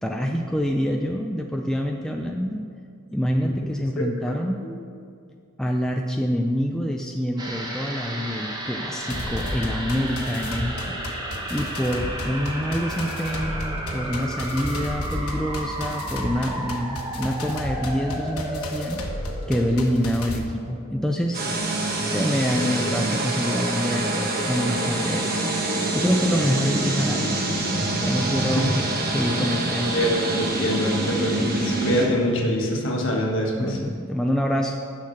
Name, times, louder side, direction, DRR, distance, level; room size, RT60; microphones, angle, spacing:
voice 1, 0.0-2.6 3.1-4.7 5.6-11.0 11.5-19.0 19.5-21.4 22.0-25.5 25.9-27.4 28.0-28.7 29.1-29.9 33.6-34.8, equal, 5° left, 1 dB, 0.4 m, -26 dB
sound 1, 7.4-22.0 22.3-22.4, right 1 dB, 20° right, 1.0 m, -34 dB
sound 2, 9.1-20.4, left 1 dB, 85° left, 1.2 m, -33 dB
sound 3, 21.3-32.1, right 2 dB, 45° right, 1.3 m, -25 dB
voice 2, 29.9-33.8, equal, 55° left, 0 dB, 1.5 m, -24 dB
7.0 x 6.5 x 7.8 m, 2.3 s
head